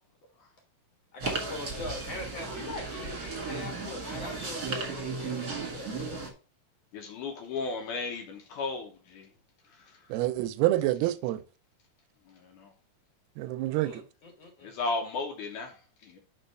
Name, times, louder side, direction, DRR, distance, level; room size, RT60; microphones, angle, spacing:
voice 1, 1.1-5.9 13.8-14.7, left 2 dB, 55° left, 2.0 m, -41 dB
sound 1, 1.2-6.3, right 4 dB, 35° right, 1.6 m, -35 dB
voice 2, 6.9-9.3 9.7-10.1 12.3-12.7 14.6-16.2, left 3 dB, 70° left, 2.0 m, -35 dB
voice 3, 10.1-11.4 13.4-14.0, right 15 dB, 85° right, 2.5 m, -27 dB
5.4 x 5.0 x 6.2 m
omnidirectional pair, 4.4 m